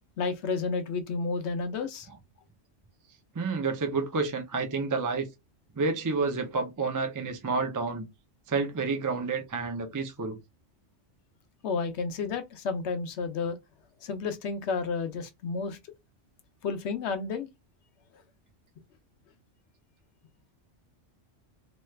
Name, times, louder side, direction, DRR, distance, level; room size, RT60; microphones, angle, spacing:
voice 1, 0.2-2.1 11.6-13.6 14.0-15.8 16.6-17.5, left 4 dB, 75° left, 0.9 m, -31 dB
voice 2, 3.3-5.3 5.8-8.1 8.5-10.4, right 4 dB, 30° right, 0.3 m, -29 dB
3.0 x 2.3 x 3.2 m
omnidirectional pair, 1.2 m